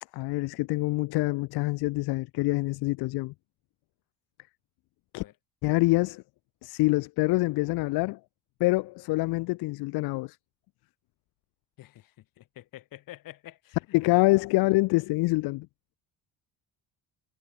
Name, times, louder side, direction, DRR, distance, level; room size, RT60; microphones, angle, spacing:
voice 1, 0.1-3.3 5.1-5.2 5.6-6.2 6.6-8.2 8.6-10.4 13.9-15.7, left 22 dB, 75° left, 1.1 m, -25 dB
voice 2, 11.8-13.8 14.0-14.2, left 15 dB, 60° left, 5.1 m, -48 dB
cardioid pair, 145°, 38 cm